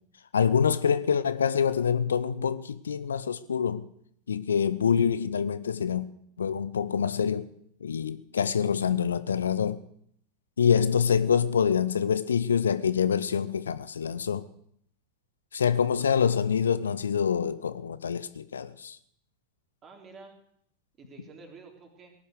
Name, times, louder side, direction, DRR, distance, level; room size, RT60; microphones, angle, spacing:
voice 1, 0.3-3.9 4.3-6.0 6.4-7.5 7.8-9.8 10.6-14.5 15.5-19.0, left 7 dB, 70° left, 0.7 m, -26 dB
voice 2, 15.6-16.1 19.8-20.3 21.0-22.1, right 4 dB, 25° right, 3.7 m, -49 dB
18.0 x 10.0 x 6.6 m
figure-of-eight pair, 90°, 0 cm